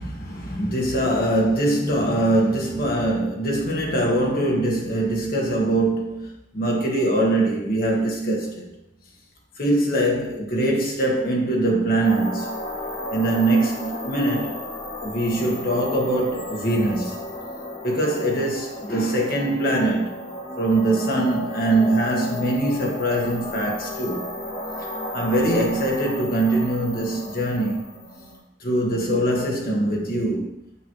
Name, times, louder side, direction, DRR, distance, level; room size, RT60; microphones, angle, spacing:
voice 1, 0.0-8.7 9.6-12.6 13.1-17.2 17.8-20.2 20.6-24.2 25.1-27.9 28.6-30.6, right 1 dB, 50° left, 1.4 m, -23 dB
sound 1, 12.0-28.4, left 1 dB, 25° left, 2.6 m, -34 dB
7.0 x 6.1 x 3.1 m
head